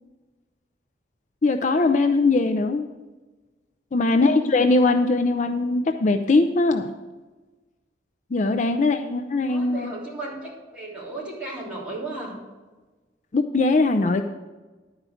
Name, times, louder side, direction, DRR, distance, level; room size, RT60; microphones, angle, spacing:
voice 1, 1.4-2.8 3.9-6.9 8.3-9.9 13.3-14.3, left 3 dB, 45° left, 6 dB, 0.4 m, -21 dB
voice 2, 4.1-4.6 8.6-12.4, right 2 dB, 5° right, -7 dB, 3.3 m, -36 dB
11.0 x 5.0 x 7.7 m, 1.2 s
head